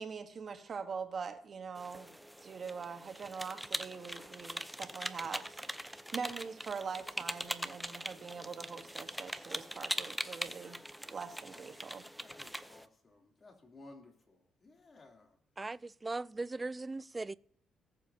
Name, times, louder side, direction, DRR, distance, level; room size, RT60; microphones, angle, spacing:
voice 1, 0.0-2.1 2.4-10.8 11.1-12.0, right 5 dB, 45° right, 1.4 m, -43 dB
sound 1, 1.8-12.9, equal, ahead, 0.7 m, -42 dB
voice 2, 11.3-15.4, left 2 dB, 35° left, 3.1 m, -58 dB
voice 3, 15.6-17.3, right 3 dB, 20° right, 0.3 m, -39 dB
19.0 x 7.4 x 2.8 m
cardioid pair, 90°, 0 cm